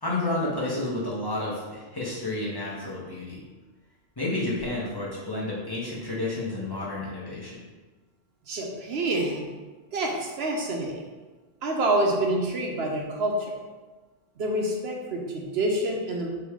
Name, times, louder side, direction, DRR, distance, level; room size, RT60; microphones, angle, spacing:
voice 1, 0.0-3.4 4.2-7.6, left 2 dB, 25° left, -7 dB, 0.9 m, -30 dB
voice 2, 8.5-9.5 9.9-11.0 11.6-13.5 14.4-16.3, right 1 dB, 70° right, 0 dB, 0.9 m, -27 dB
3.5 x 3.1 x 4.7 m, 1.3 s
omnidirectional pair, 1.1 m